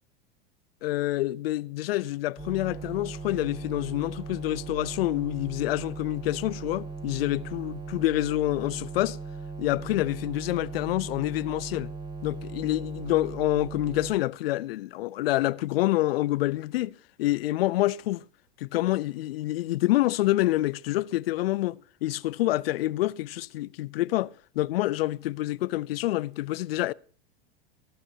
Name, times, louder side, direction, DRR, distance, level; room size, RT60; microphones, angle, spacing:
voice 1, 0.8-9.2 9.6-11.9 12.2-18.2 18.6-26.9, left 16 dB, 75° left, 0.5 m, -27 dB
sound 1, 2.4-14.1, right 4 dB, 15° right, 1.3 m, -38 dB
15.5 x 13.0 x 2.8 m
hypercardioid pair, 120°, 30 cm